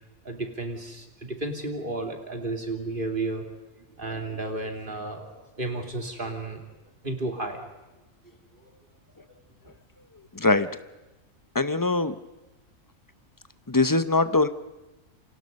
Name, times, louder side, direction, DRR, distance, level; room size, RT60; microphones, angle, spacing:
voice 1, 0.2-3.4 4.0-6.6 7.0-7.7, right 2 dB, 40° right, 3 dB, 3.2 m, -32 dB
voice 2, 10.3-10.7 11.5-12.1 13.7-14.5, left 3 dB, 20° left, 12 dB, 0.8 m, -22 dB
29.0 x 25.5 x 5.4 m, 1.1 s
omnidirectional pair, 1.4 m